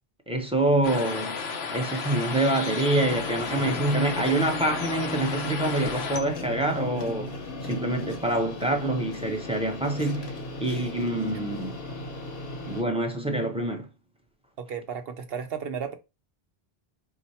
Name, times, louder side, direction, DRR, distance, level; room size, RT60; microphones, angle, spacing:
voice 1, 0.3-1.4 1.7-7.3 7.6-11.8 12.6-13.9, right 2 dB, 5° right, 0.8 m, -26 dB
sound 1, 0.8-6.2, left 5 dB, 85° left, 0.9 m, -33 dB
sound 2, 3.0-12.8, left 2 dB, 65° left, 1.0 m, -37 dB
voice 2, 14.6-15.9, right 7 dB, 70° right, 1.0 m, -33 dB
4.8 x 2.1 x 4.1 m
omnidirectional pair, 1.0 m